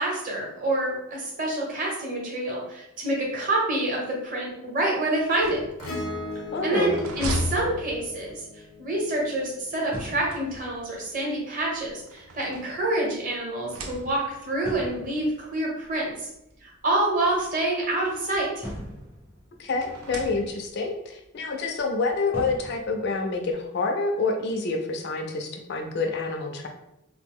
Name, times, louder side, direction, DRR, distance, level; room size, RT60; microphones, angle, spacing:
voice 1, 0.0-5.6 6.6-8.4 8.8-16.3 16.6-18.6, right 1 dB, 40° right, -3 dB, 0.8 m, -27 dB
sound 1, 5.2-8.5 9.8-11.0 11.8-13.2 13.6-14.5 15.4-15.5 15.9-16.0 17.1-18.5 19.7-20.9, right 1 dB, 80° right, 0.5 m, -37 dB
Acoustic guitar / Strum, 5.8-10.4 12.3-12.4, left 2 dB, 80° left, 0.6 m, -39 dB
voice 2, 6.5-6.9 19.6-26.7, left 3 dB, 50° left, 3 dB, 0.3 m, -27 dB
sound 2, 9.2-9.6 9.9-12.0 12.4-12.7 13.1-13.2 13.4-13.5 14.4-17.5 17.8-20.7 20.9-21.3 21.8-23.6, equal, 10° right, 0.5 m, -42 dB
2.4 x 2.0 x 3.5 m, 0.84 s
head